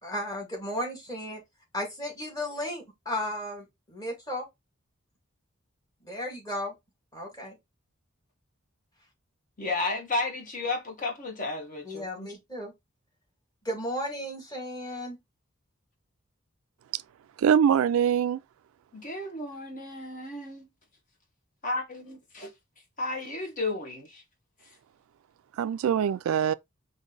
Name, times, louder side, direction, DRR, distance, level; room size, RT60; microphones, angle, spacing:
voice 1, 0.0-1.4 1.7-4.5 6.0-6.7 7.1-7.6 11.9-12.7 13.6-15.2, left 1 dB, 20° left, 2.2 m, -34 dB
voice 2, 9.6-12.3 18.9-20.7 21.6-22.5 23.0-24.2, left 2 dB, 40° left, 1.2 m, -33 dB
voice 3, 17.4-18.4 25.6-26.5, right 8 dB, 90° right, 0.3 m, -23 dB
5.1 x 2.7 x 3.8 m
head